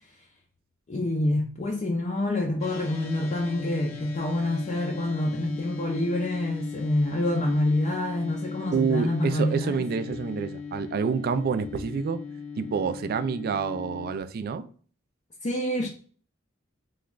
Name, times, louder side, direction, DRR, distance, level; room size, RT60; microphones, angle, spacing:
voice 1, 0.9-9.8 15.4-15.9, left 1 dB, 35° left, 0.4 m, -27 dB
sound 1, 2.6-14.2, left 5 dB, 75° left, 0.6 m, -39 dB
voice 2, 8.7-12.2 12.6-14.7, right 6 dB, 50° right, 0.3 m, -28 dB
3.1 x 2.3 x 3.6 m
head